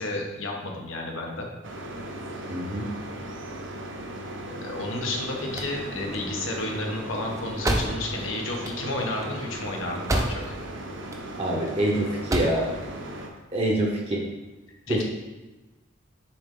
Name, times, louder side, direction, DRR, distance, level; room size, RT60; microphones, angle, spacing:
voice 1, 0.0-1.5 4.4-10.5 14.9-15.0, left 2 dB, 90° left, 0 dB, 1.1 m, -32 dB
sound 1, 1.6-13.3, right 1 dB, 70° right, 0.7 m, -37 dB
voice 2, 2.5-2.9 11.4-12.7 13.5-14.2 14.9-15.0, right 1 dB, 30° right, -1 dB, 0.8 m, -25 dB
sound 2, 5.3-10.7 11.0-11.7 12.1-12.7, right 1 dB, 15° right, 0.5 m, -30 dB
6.9 x 3.8 x 3.7 m, 1.1 s
head